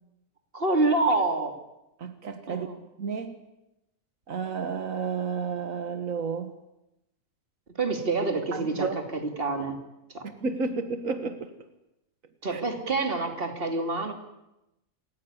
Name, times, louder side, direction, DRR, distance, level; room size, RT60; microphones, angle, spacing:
voice 1, 0.5-1.6 2.5-2.8 7.7-8.9 9.1-9.8 10.1-10.3 12.4-14.1, right 3 dB, 45° right, 5 dB, 3.0 m, -27 dB
voice 2, 2.0-2.7 3.0-3.4 4.3-6.5 8.5-9.0 10.2-11.5 12.5-12.6, right 5 dB, 90° right, 9 dB, 1.9 m, -31 dB
27.5 x 15.0 x 9.7 m, 0.91 s
omnidirectional pair, 1.3 m